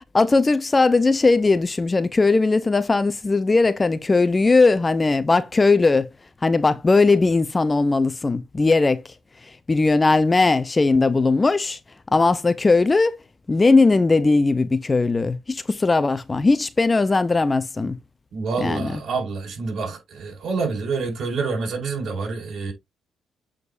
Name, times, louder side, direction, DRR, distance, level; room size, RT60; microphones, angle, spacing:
voice 1, 0.1-6.1 6.4-9.0 9.7-11.8 12.1-13.2 13.5-18.0 18.6-19.0, left 3 dB, 25° left, 0.7 m, -19 dB
voice 2, 18.3-22.7, right 4 dB, 60° right, 4.6 m, -27 dB
8.1 x 5.1 x 2.6 m
cardioid pair, 90°, 0 cm